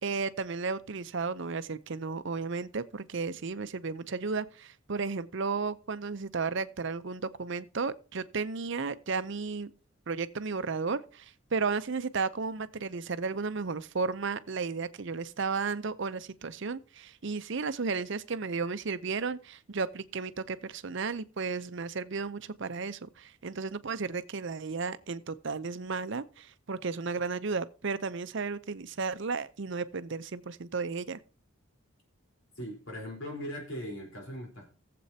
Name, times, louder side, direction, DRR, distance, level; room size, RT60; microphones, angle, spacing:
voice 1, 0.0-9.7 10.1-31.2, right 4 dB, 55° right, 0.6 m, -34 dB
voice 2, 32.6-34.7, equal, 60° left, 4.0 m, -39 dB
17.5 x 7.7 x 2.8 m
head